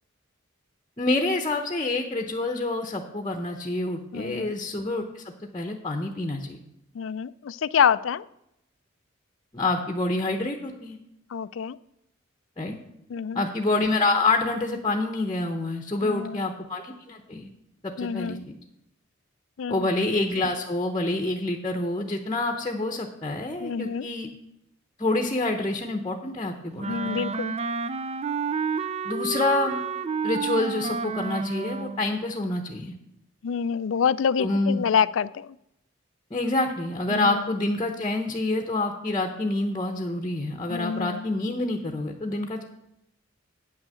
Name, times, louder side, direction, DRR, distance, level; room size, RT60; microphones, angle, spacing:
voice 1, 1.0-5.2 5.5-6.6 9.5-11.0 12.6-12.8 13.3-17.5 17.8-18.4 19.7-24.3 25.0-27.3 29.0-29.8 30.2-32.9 34.4-34.8 36.3-42.6, left 2 dB, 20° left, 4 dB, 0.8 m, -27 dB
voice 2, 4.1-4.5 6.9-8.2 11.3-11.8 13.1-13.5 16.0-16.5 18.0-18.4 19.6-19.9 23.6-24.1 26.9-27.6 33.4-35.5 37.1-37.5 40.7-41.3, left 7 dB, 70° left, 17 dB, 0.4 m, -27 dB
Wind instrument woodwind instrument, 26.8-32.0, right 5 dB, 30° right, 0.4 m, -30 dB
9.2 x 6.3 x 7.6 m, 0.81 s
head